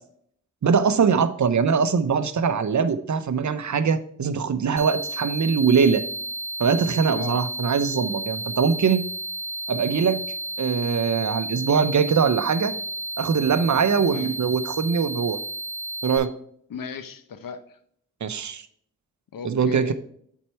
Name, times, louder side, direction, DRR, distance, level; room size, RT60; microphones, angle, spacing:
voice 1, 0.6-6.0 6.6-9.1 9.7-10.2 10.6-12.7 13.2-15.4 16.0-16.3 18.2-18.6 19.4-19.9, right 6 dB, 60° right, 12 dB, 0.7 m, -22 dB
sound 1, 4.8-16.2, right 2 dB, 20° right, 2.7 m, -32 dB
voice 2, 14.0-14.3 16.7-17.8 19.3-19.9, left 6 dB, 90° left, 10 dB, 0.8 m, -36 dB
7.2 x 4.6 x 4.5 m, 0.64 s
cardioid pair, 50°, 33 cm